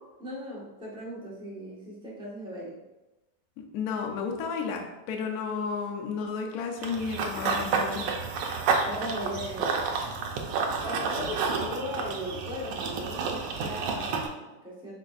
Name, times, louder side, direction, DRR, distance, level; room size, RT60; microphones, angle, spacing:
voice 1, 0.2-2.8 8.9-10.0 10.8-14.9, equal, 5° right, -6 dB, 0.7 m, -37 dB
voice 2, 3.7-8.0, left 5 dB, 70° left, 2 dB, 1.0 m, -32 dB
Run / Bird vocalization bird call bird song, 6.8-14.3, right 5 dB, 90° right, 1.3 m, -30 dB
5.0 x 4.1 x 2.3 m, 1.0 s
omnidirectional pair, 1.9 m